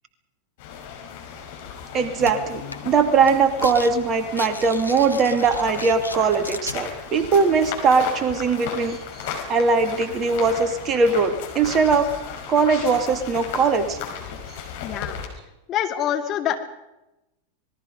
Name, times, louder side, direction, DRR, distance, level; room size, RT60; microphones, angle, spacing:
sound 1, 0.6-15.3, left 7 dB, 50° left, 5.4 m, -36 dB
voice 1, 1.9-9.0 9.5-12.1 12.5-14.0, right 4 dB, 30° right, 8 dB, 2.4 m, -20 dB
sound 2, 2.2-2.3 2.7-3.0 3.2-3.9 4.2-6.8, left 2 dB, 85° left, 1.1 m, -35 dB
voice 2, 14.8-15.2 15.7-16.6, left 10 dB, 30° left, 4 dB, 2.5 m, -25 dB
26.5 x 20.5 x 5.4 m, 0.94 s
figure-of-eight pair, 90°, 0 cm